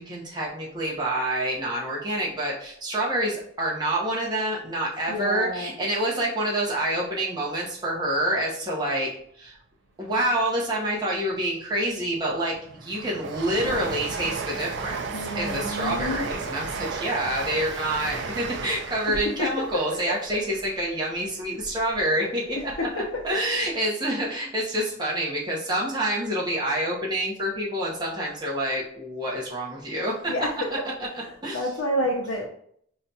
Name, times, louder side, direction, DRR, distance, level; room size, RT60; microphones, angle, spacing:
voice 1, 0.0-9.1 9.4-9.6 10.0-12.5 12.8-30.3 31.4-31.7, right 1 dB, 20° right, -5 dB, 0.8 m, -27 dB
voice 2, 5.1-5.7 15.1-16.3 30.3-30.5 31.5-32.5, equal, 80° left, -3 dB, 0.6 m, -28 dB
Train, 11.8-22.0 22.4-23.3 23.6-23.7, right 4 dB, 55° right, 0.4 m, -35 dB
5.6 x 2.3 x 2.6 m, 0.65 s
head